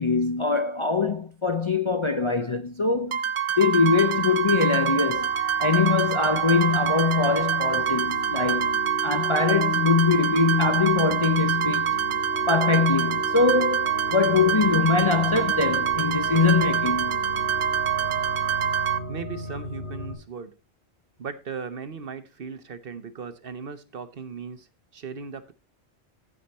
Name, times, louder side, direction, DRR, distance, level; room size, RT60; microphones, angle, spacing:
voice 1, 0.0-3.2 3.6-5.3 5.6-12.0 12.5-17.2, left 4 dB, 35° left, 0.5 m, -23 dB
sound 1, 3.1-19.0, right 8 dB, 85° right, 1.1 m, -26 dB
sound 2, 5.1-20.1, left 1 dB, 75° left, 6.4 m, -36 dB
voice 2, 19.1-20.5 21.2-24.7 24.9-25.5, right 5 dB, 55° right, 1.1 m, -37 dB
15.0 x 5.0 x 4.2 m
omnidirectional pair, 1.1 m